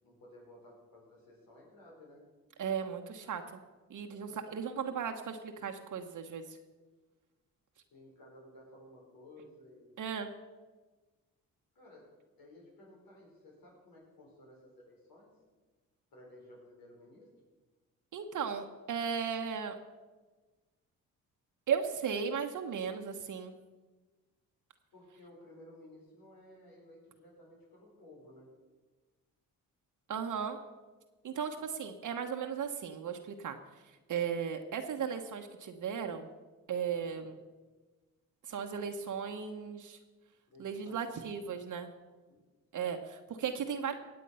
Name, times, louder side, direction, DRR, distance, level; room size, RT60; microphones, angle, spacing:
voice 1, 0.0-2.3 4.1-4.4 4.7-5.0 7.9-10.0 11.8-12.1 12.4-15.3 16.1-17.3 24.9-28.5 36.9-37.2 40.5-41.0 42.0-42.4 42.7-42.9, left 1 dB, 75° left, -2 dB, 5.3 m, -56 dB
voice 2, 2.6-3.6 3.9-6.6 10.0-10.3 18.1-19.8 21.7-23.5 30.1-30.6 31.2-36.3 36.7-37.4 38.4-40.0 40.6-41.9 42.7-43.9, right 7 dB, 60° right, 5 dB, 1.2 m, -36 dB
16.5 x 8.3 x 5.6 m, 1.3 s
supercardioid pair, 60°, 35 cm